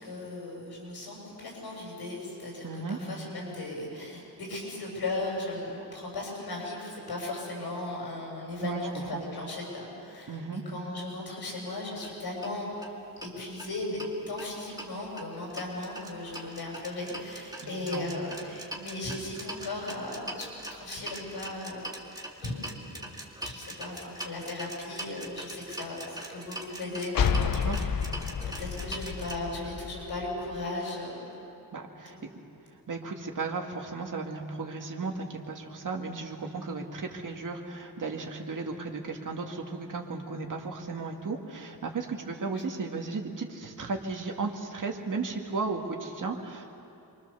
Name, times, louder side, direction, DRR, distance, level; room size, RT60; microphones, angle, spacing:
voice 1, 0.0-12.9 13.2-14.0 14.3-21.9 22.4-23.0 23.4-27.9 28.6-31.2 32.1-32.2 42.5-42.7, left 2 dB, 80° left, -1 dB, 7.1 m, -37 dB
voice 2, 2.6-3.0 8.6-8.9 9.1-9.3 10.3-10.6 17.6-18.1 27.4-27.9 31.7-32.2 32.9-46.7, right 4 dB, 55° right, 2 dB, 2.3 m, -35 dB
sound 1, 11.9-12.1 12.4-12.5 12.8-12.9 13.2-14.1 14.4-29.3, right 1 dB, 10° right, 2.1 m, -42 dB
sound 2, 27.1-30.7, left 6 dB, 60° left, 0.9 m, -30 dB
27.5 x 24.0 x 7.0 m, 2.7 s
wide cardioid pair, 155°, 38 cm